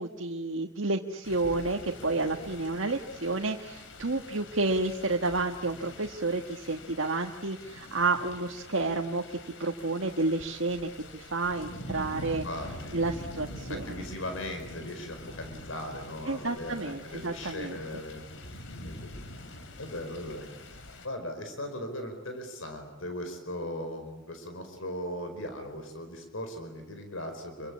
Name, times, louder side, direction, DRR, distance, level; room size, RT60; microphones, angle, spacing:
voice 1, 0.0-12.5 12.9-13.9 16.3-17.8, right 3 dB, 75° right, 2 dB, 1.5 m, -30 dB
sound 1, 1.2-21.1, left 1 dB, 65° left, 3.1 m, -45 dB
voice 2, 12.4-13.0 13.7-19.1 19.8-20.5 21.0-27.7, left 1 dB, 85° left, 6 dB, 4.8 m, -38 dB
28.5 x 24.0 x 8.6 m, 1.1 s
head